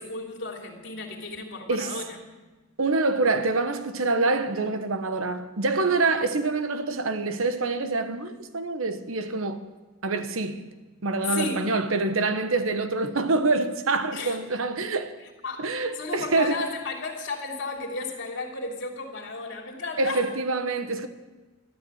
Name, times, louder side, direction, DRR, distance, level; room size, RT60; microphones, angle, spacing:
voice 1, 0.0-2.2 6.2-6.3 11.2-11.6 14.1-14.4 15.4-15.7 16.0-20.3, left 3 dB, 60° left, 3.0 m, -33 dB
voice 2, 2.8-9.6 10.0-10.7 11.0-15.1 15.6-16.6 20.0-21.1, right 3 dB, 75° right, 1.1 m, -26 dB
13.0 x 12.5 x 8.0 m
head